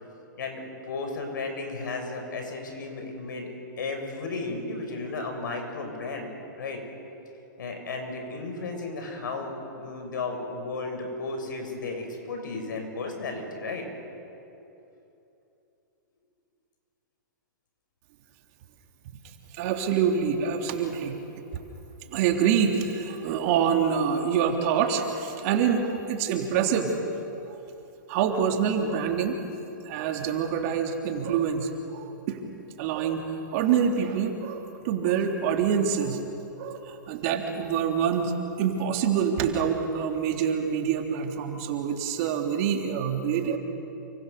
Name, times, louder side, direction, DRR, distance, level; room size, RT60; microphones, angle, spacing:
voice 1, 0.4-3.5 3.8-6.3 6.6-6.8 7.6-13.9, left 3 dB, 70° left, 3 dB, 6.8 m, -34 dB
voice 2, 19.5-21.4 22.1-26.9 27.4-27.6 28.1-29.4 29.8-32.4 32.8-36.2 36.6-38.3 38.6-43.6, right 7 dB, 45° right, 3 dB, 3.6 m, -26 dB
29.0 x 25.5 x 7.0 m, 2.9 s
hypercardioid pair, 125°, 11 cm